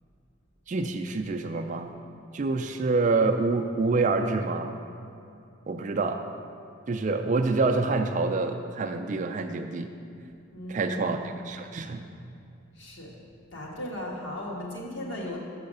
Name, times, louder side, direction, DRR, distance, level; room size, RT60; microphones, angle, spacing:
voice 1, 0.7-1.9 2.3-4.8 5.7-6.2 6.9-9.9 10.7-12.0, right 3 dB, 35° right, 6 dB, 0.3 m, -27 dB
voice 2, 10.5-11.1 12.8-13.1 13.5-15.4, left 1 dB, 60° left, -3 dB, 1.4 m, -36 dB
6.2 x 5.6 x 6.5 m, 2.6 s
head